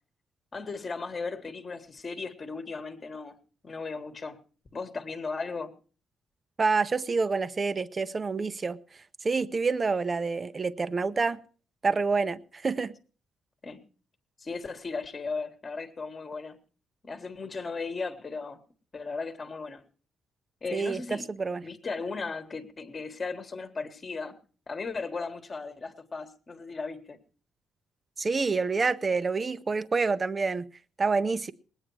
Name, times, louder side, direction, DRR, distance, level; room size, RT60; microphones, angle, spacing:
voice 1, 0.5-3.4 3.6-4.4 4.7-5.7 13.6-13.8 14.4-16.6 17.0-18.6 18.9-19.8 20.6-21.3 21.6-24.4 24.7-27.2, left 4 dB, 25° left, 1.4 m, -36 dB
voice 2, 6.6-8.8 9.2-11.4 11.8-13.0 20.7-21.6 28.2-30.7 31.0-31.5, right 4 dB, 25° right, 0.7 m, -27 dB
20.5 x 9.0 x 4.7 m
cardioid pair, 150°, 0 cm